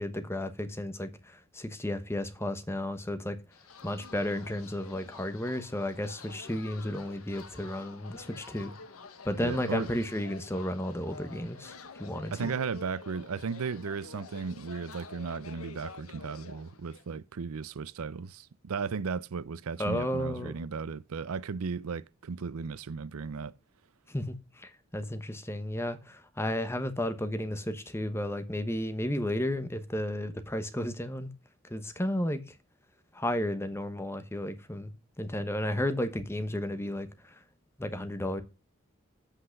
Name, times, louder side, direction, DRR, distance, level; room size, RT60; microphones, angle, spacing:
voice 1, 0.0-3.4 3.8-8.7 9.2-12.5 19.8-20.6 24.1-31.3 31.6-32.6 33.1-34.9 35.2-37.4 37.8-38.4, left 1 dB, 10° left, 1.1 m, -33 dB
sound 1, 3.5-17.2, left 4 dB, 85° left, 1.2 m, -48 dB
voice 2, 9.4-9.9 12.3-23.5, right 5 dB, 80° right, 0.5 m, -35 dB
8.2 x 5.7 x 6.5 m
head